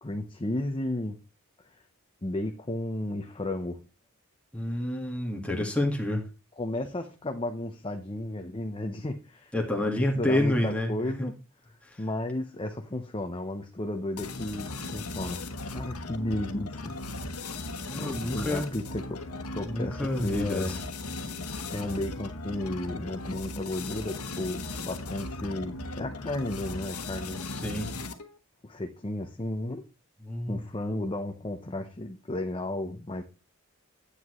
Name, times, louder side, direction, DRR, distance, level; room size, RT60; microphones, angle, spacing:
voice 1, 0.0-1.2 2.2-3.8 6.6-9.5 9.8-11.4 12.0-15.4 15.7-17.0 17.4-17.5 18.0-20.8 21.7-27.5 28.6-29.8 30.5-33.2, left 1 dB, 25° left, 5 dB, 0.7 m, -33 dB
voice 2, 4.5-6.3 9.5-11.3 11.8-12.0 17.9-18.7 19.6-20.7 27.5-27.9 30.2-30.6, left 1 dB, 5° left, -1 dB, 1.6 m, -29 dB
sound 1, 14.2-28.4, left 2 dB, 90° left, 1.2 m, -37 dB
9.8 x 8.1 x 3.1 m, 0.29 s
head